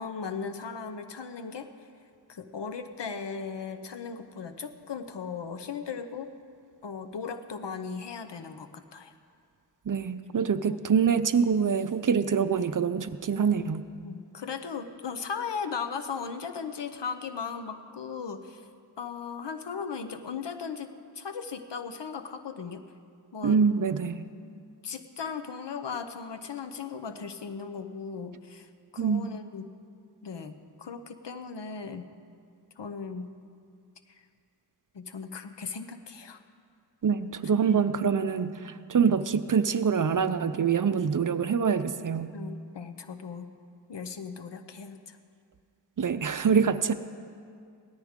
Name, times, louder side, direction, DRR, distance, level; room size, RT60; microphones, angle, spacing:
voice 1, 0.0-1.7 2.3-6.3 6.8-9.1 14.0-18.6 19.0-22.9 23.3-23.6 24.8-28.7 28.9-29.8 30.2-32.1 32.8-33.3 34.9-36.4 42.3-43.5 43.9-45.2, left 5 dB, 80° left, 8 dB, 0.9 m, -37 dB
voice 2, 9.9-13.9 23.4-24.3 29.0-29.3 37.0-42.3 46.0-46.9, right 6 dB, 50° right, 12 dB, 0.6 m, -25 dB
17.5 x 13.5 x 3.7 m, 2.2 s
wide cardioid pair, 75°, 42 cm